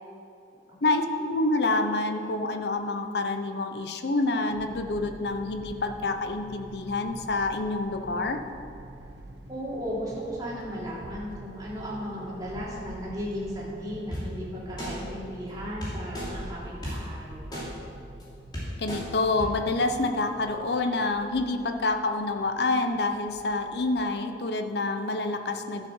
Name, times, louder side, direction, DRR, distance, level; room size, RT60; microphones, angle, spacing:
voice 1, 0.8-8.4 18.8-25.9, left 2 dB, 65° left, 7 dB, 0.8 m, -27 dB
sound 1, 4.5-24.1, right 1 dB, 75° right, 0.8 m, -45 dB
voice 2, 9.5-17.5, equal, 20° right, -7 dB, 3.1 m, -35 dB
sound 2, 14.1-14.2 14.8-14.9 15.8-16.3 16.8-16.9 17.5-17.6 18.2-18.3 18.5-19.0 19.4-19.5, equal, 25° left, 3.1 m, -33 dB
12.0 x 7.5 x 6.3 m, 2.6 s
head